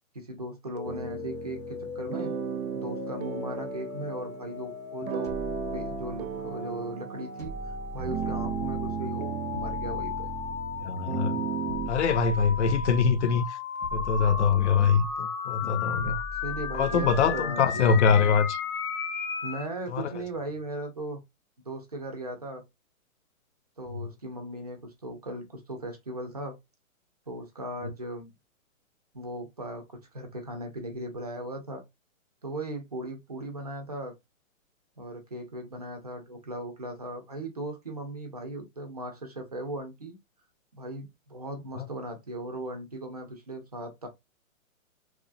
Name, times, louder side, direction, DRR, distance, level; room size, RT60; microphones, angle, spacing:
voice 1, 0.1-2.3 2.7-5.3 5.7-10.3 15.6-18.0 19.4-21.2 21.7-22.6 23.8-26.6 27.3-28.3 29.1-31.8 32.4-34.1 35.0-40.2 40.7-44.1, right 1 dB, 30° right, 0.4 m, -38 dB
sound 1, 0.8-19.7, left 6 dB, 85° left, 0.9 m, -36 dB
sound 2, 0.8-11.9, right 10 dB, 80° right, 0.6 m, -36 dB
sound 3, 5.2-6.6 7.4-9.0 9.5-10.9 11.7-13.3 13.8-15.2 15.9-17.6, left 2 dB, 10° left, 0.7 m, -41 dB
voice 2, 10.8-11.4 11.9-13.6 13.9-16.2 16.7-18.6 19.9-20.1 41.8-41.9, left 6 dB, 55° left, 0.5 m, -24 dB
3.0 x 2.3 x 2.4 m
hypercardioid pair, 160°, 42 cm